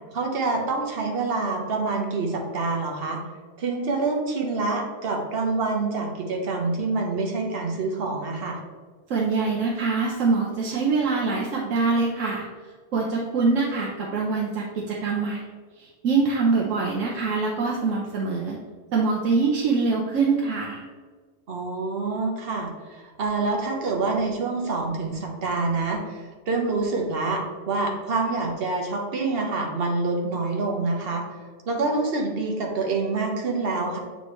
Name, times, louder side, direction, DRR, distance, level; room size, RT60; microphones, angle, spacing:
voice 1, 0.1-3.2 3.6-8.6 21.5-31.2 31.7-34.0, right 3 dB, 50° right, 0 dB, 1.2 m, -26 dB
voice 2, 9.1-12.5 12.9-15.4 15.8-18.6 18.9-20.8, right 4 dB, 85° right, -3 dB, 1.2 m, -24 dB
7.7 x 4.2 x 3.1 m, 1.5 s
omnidirectional pair, 1.3 m